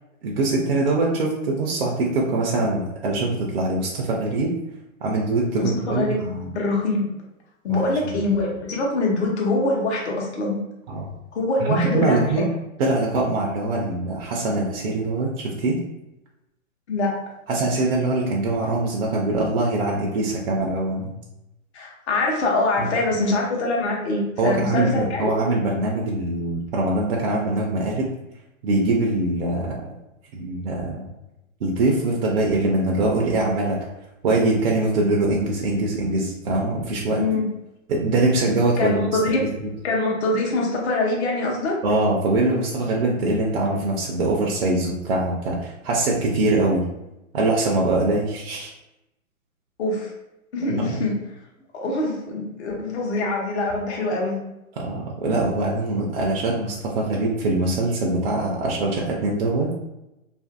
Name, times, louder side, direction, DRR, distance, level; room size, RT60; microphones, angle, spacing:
voice 1, 0.2-4.5 5.0-6.5 7.7-8.1 10.9-11.1 11.6-12.4 12.8-15.8 17.5-21.1 22.8-22.9 24.4-28.1 28.6-29.8 30.3-31.1 31.6-33.8 34.2-37.2 37.9-39.2 41.8-46.8 47.3-48.7 50.7-51.0 54.8-59.7, right 2 dB, 45° right, -2 dB, 0.5 m, -23 dB
voice 2, 5.6-6.2 6.5-7.1 7.6-10.6 11.3-12.2 16.9-17.2 21.7-25.4 37.2-37.5 38.8-39.5 39.8-41.8 49.8-50.1 50.5-51.2 51.7-54.4, left 2 dB, 50° left, -1 dB, 0.8 m, -24 dB
2.5 x 2.5 x 2.5 m, 0.92 s
hypercardioid pair, 125°, 42 cm